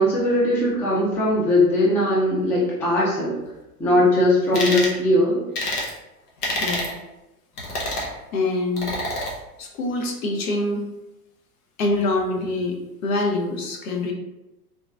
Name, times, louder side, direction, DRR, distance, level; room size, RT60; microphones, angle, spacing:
voice 1, 0.0-3.3 3.8-5.4, left 1 dB, 5° left, -6 dB, 0.3 m, -19 dB
sound 1, 4.5-4.9 5.5-5.9 6.4-6.9 7.6-8.1 8.8-9.3, left 1 dB, 80° left, 1.1 m, -27 dB
voice 2, 6.6-6.9 8.0-8.9 9.6-10.9 11.8-14.1, left 2 dB, 60° left, 1 dB, 0.9 m, -25 dB
3.7 x 3.0 x 2.4 m, 0.98 s
figure-of-eight pair, 90°, 46 cm